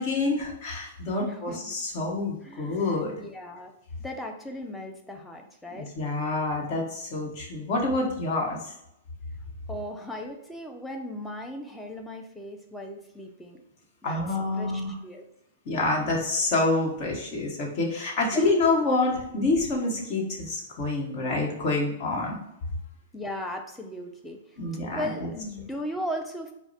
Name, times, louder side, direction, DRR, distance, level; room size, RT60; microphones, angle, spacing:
voice 1, 0.0-3.1 5.7-8.7 14.0-14.9 15.6-22.4 24.6-25.3, left 2 dB, 40° left, -1 dB, 1.2 m, -27 dB
voice 2, 1.2-1.8 2.4-3.7 4.0-5.9 9.7-13.6 14.0-14.2 14.5-15.3 18.3-18.5 23.1-24.4 24.9-26.5, equal, 5° left, 2 dB, 0.5 m, -37 dB
4.5 x 2.1 x 4.1 m, 0.80 s
hypercardioid pair, 140°, 0 cm